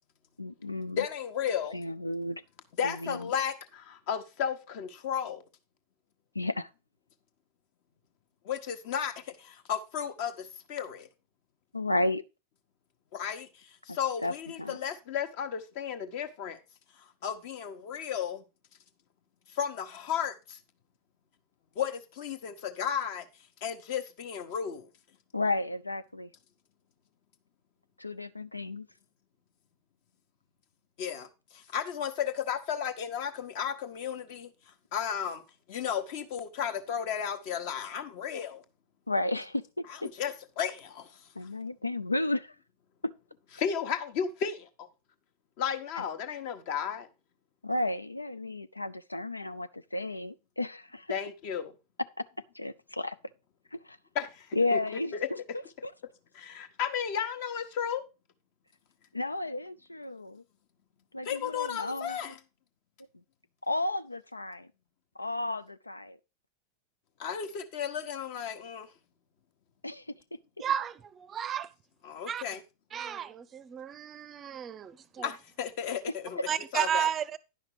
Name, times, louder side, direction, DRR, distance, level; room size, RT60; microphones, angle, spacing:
voice 1, 0.4-1.0 1.7-2.4 2.8-3.3 6.3-6.7 11.7-12.2 13.9-14.8 25.3-26.3 28.0-28.9 39.1-40.1 41.4-42.6 43.0-43.1 45.9-46.0 47.6-51.1 52.5-53.2 53.7-54.0 54.5-55.4 55.8-55.9 59.1-60.4 61.1-62.2 63.6-64.7 65.2-66.2 69.8-70.1 76.0-76.4, left 2 dB, 85° left, 0.4 m, -33 dB
voice 2, 1.0-1.7 2.8-5.4 8.4-11.1 13.1-16.6 17.0-18.4 19.5-20.6 21.7-23.3 23.6-24.9 31.0-34.5 34.9-35.4 35.7-38.6 40.2-41.2 43.6-44.7 45.6-47.1 51.1-51.7 54.1-54.8 55.1-55.3 56.3-58.0 61.2-62.4 67.2-68.9 72.0-72.6 75.2-76.4 76.7-77.1, left 8 dB, 50° left, 1.1 m, -34 dB
voice 3, 70.6-71.7 72.3-72.4 72.9-75.3 76.5-77.4, right 9 dB, 25° right, 0.6 m, -33 dB
10.5 x 5.8 x 4.7 m
figure-of-eight pair, 90°, 0 cm